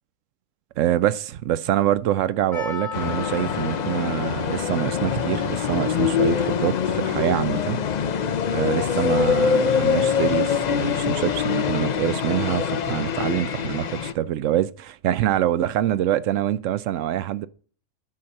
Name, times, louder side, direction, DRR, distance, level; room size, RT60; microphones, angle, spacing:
voice 1, 0.8-7.8 8.5-17.5, right 12 dB, 75° right, 1.0 m, -25 dB
Percussion, 2.5-7.4, left 4 dB, 15° left, 2.6 m, -38 dB
sound 1, 2.9-14.1, left 7 dB, 60° left, 0.4 m, -24 dB
8.6 x 4.2 x 6.3 m
omnidirectional pair, 1.4 m